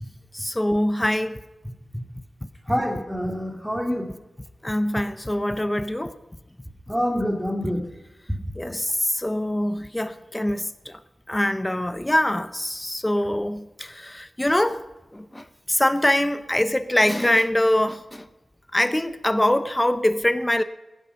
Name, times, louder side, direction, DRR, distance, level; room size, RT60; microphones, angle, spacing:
voice 1, 0.3-1.4 4.6-6.1 8.6-10.9 11.3-14.8 15.1-18.2 18.7-20.6, left 1 dB, 10° left, 0.8 m, -23 dB
voice 2, 2.7-4.1 6.9-7.8, equal, 5° right, 2.6 m, -26 dB
21.0 x 11.0 x 5.8 m
wide cardioid pair, 90°, 0 cm